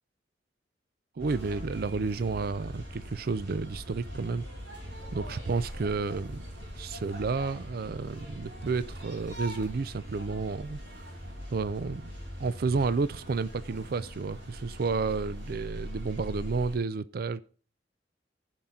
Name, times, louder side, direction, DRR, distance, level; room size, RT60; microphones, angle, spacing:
voice 1, 1.2-4.4 5.1-6.4 6.8-11.1 11.5-12.0 12.4-17.4, right 4 dB, 55° right, 0.4 m, -31 dB
sound 1, 1.2-16.8, equal, 85° right, 4.3 m, -42 dB
14.5 x 5.7 x 3.7 m
head